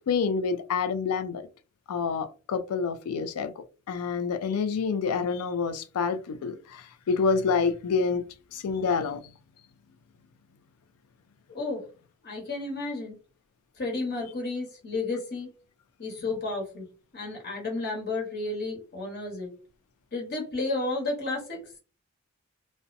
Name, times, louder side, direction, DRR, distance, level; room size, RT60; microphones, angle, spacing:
voice 1, 0.0-1.5 1.9-8.2 8.5-9.3, left 5 dB, 85° left, 0.4 m, -28 dB
voice 2, 11.5-11.8 12.2-13.2 13.8-15.5 16.0-16.8 17.1-19.5 20.1-21.6, left 2 dB, 45° left, 1.1 m, -32 dB
2.5 x 2.1 x 2.5 m
head